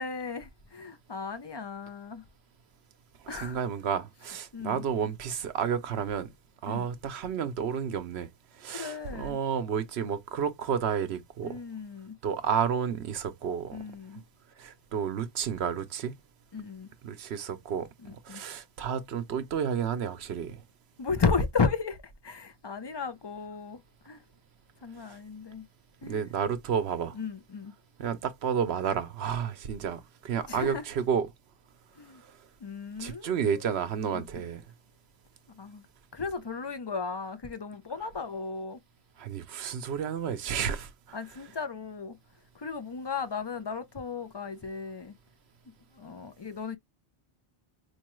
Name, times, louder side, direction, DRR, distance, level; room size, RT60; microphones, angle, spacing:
voice 1, 0.0-2.2 3.3-3.6 4.5-4.8 6.7-6.9 8.7-9.4 11.4-12.2 13.7-14.2 16.5-16.9 18.0-18.4 21.0-24.2 24.8-25.7 26.0-26.3 27.1-27.7 30.4-30.8 32.0-32.2 32.6-33.6 34.1-34.2 35.6-35.8 36.1-38.8 41.1-42.2 42.5-45.1 45.7-46.8, left 5 dB, 35° left, 0.4 m, -34 dB
voice 2, 3.3-6.3 6.6-8.3 8.6-11.6 12.2-13.8 14.6-16.2 17.0-20.6 26.0-27.1 28.0-31.3 33.0-34.6 39.2-41.2, right 7 dB, 75° right, 0.9 m, -31 dB
4.7 x 2.2 x 3.0 m
omnidirectional pair, 1.1 m